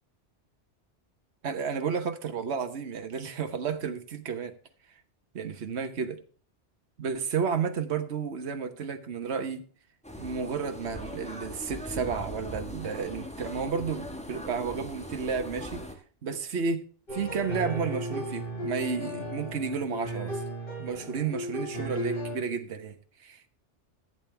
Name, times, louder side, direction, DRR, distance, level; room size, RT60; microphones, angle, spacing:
voice 1, 1.4-4.5 5.3-6.2 7.0-9.7 10.2-15.8 16.2-16.8 17.1-20.4 20.8-22.9 23.2-23.5, right 6 dB, 65° right, 1.4 m, -32 dB
sound 1, 10.0-15.9, equal, 5° left, 1.5 m, -40 dB
sound 2, 17.1-22.4, right 1 dB, 50° left, 6.3 m, -35 dB
15.5 x 8.7 x 3.4 m
omnidirectional pair, 1.2 m